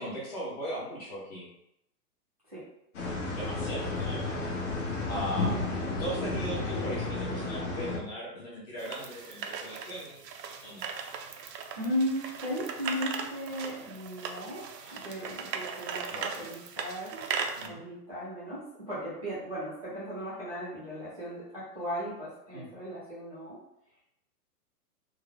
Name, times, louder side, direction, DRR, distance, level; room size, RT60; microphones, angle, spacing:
voice 1, 0.0-1.5 3.3-4.3 5.1-5.5 6.0-10.2 10.6-10.9 14.8-15.0 16.1-16.3 17.6-17.8 22.5-22.7, right 1 dB, 25° left, -6 dB, 0.9 m, -38 dB
sound 1, 2.9-8.0, left 3 dB, 50° left, 1.0 m, -32 dB
voice 2, 3.5-4.3 5.1-5.7 11.8-17.2 17.6-23.6, equal, 25° right, -12 dB, 0.4 m, -37 dB
sound 2, 8.8-17.7, right 6 dB, 80° right, 0.7 m, -38 dB
3.6 x 2.0 x 3.4 m, 0.80 s
hypercardioid pair, 170°, 48 cm